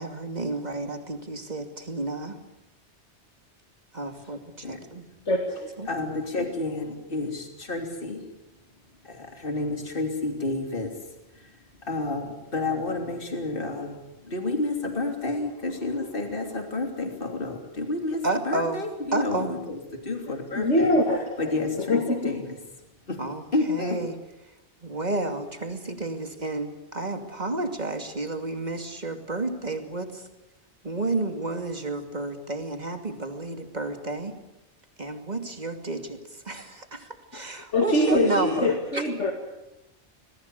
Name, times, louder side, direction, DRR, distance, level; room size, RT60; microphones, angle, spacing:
voice 1, 0.0-2.4 3.9-5.0 5.8-5.9 18.2-19.5 23.2-24.2 24.5-24.6 24.8-30.3 30.8-34.4 35.0-39.0, right 2 dB, 40° right, 6 dB, 2.7 m, -31 dB
voice 2, 5.3-5.7 20.6-21.2 21.9-22.4 37.7-39.3, left 1 dB, 85° left, 4 dB, 2.5 m, -23 dB
voice 3, 5.8-8.3 9.0-20.9 21.4-22.6 23.1-23.2 23.5-24.0, left 2 dB, 50° left, 4 dB, 3.3 m, -30 dB
27.0 x 20.0 x 8.3 m, 0.94 s
omnidirectional pair, 1.2 m